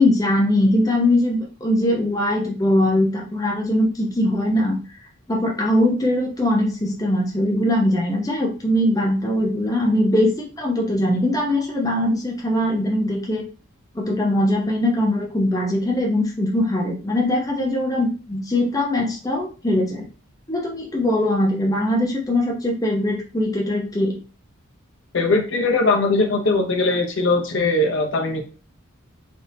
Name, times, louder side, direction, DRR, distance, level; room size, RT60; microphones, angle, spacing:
voice 1, 0.0-4.8 5.3-13.4 13.9-20.0 20.5-24.2, left 1 dB, 15° left, -1 dB, 0.6 m, -21 dB
voice 2, 25.1-28.4, left 2 dB, 65° left, 3 dB, 0.7 m, -20 dB
3.5 x 2.7 x 2.7 m, 0.35 s
head